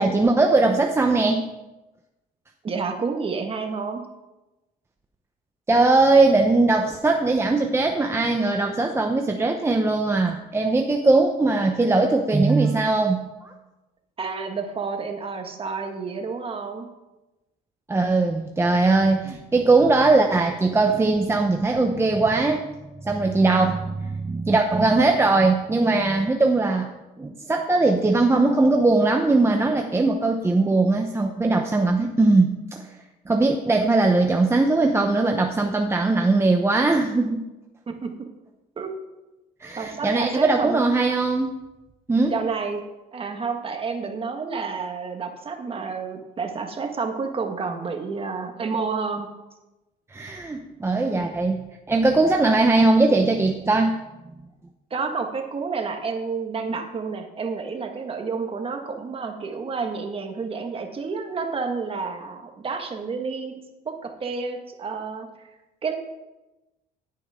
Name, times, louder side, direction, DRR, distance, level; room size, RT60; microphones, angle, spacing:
voice 1, 0.0-1.4 5.7-13.5 17.9-22.7 23.0-26.9 27.2-32.8 33.3-37.4 39.6-41.5 42.1-42.3 50.1-53.9, right 3 dB, 15° right, 3 dB, 0.9 m, -20 dB
voice 2, 2.6-4.0 14.2-16.9 37.9-38.3 38.8-38.9 39.8-40.8 42.3-42.8 43.1-49.3 51.1-51.3 54.9-63.6 63.8-65.5 65.8-65.9, right 5 dB, 35° right, 4 dB, 1.7 m, -30 dB
16.0 x 8.7 x 3.7 m, 1.0 s
cardioid pair, 110°, 17 cm